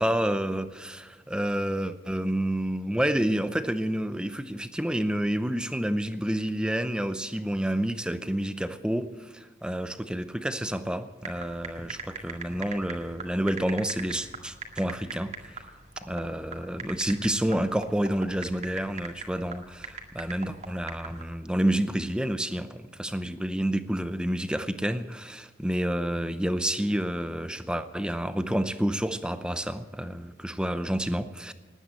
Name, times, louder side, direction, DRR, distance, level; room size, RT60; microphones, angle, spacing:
voice 1, 0.0-15.3 16.0-31.5, right 1 dB, 5° right, 11 dB, 0.6 m, -29 dB
sound 1, 11.2-21.2, right 4 dB, 35° right, 1.9 m, -41 dB
19.5 x 9.2 x 7.7 m, 1.4 s
head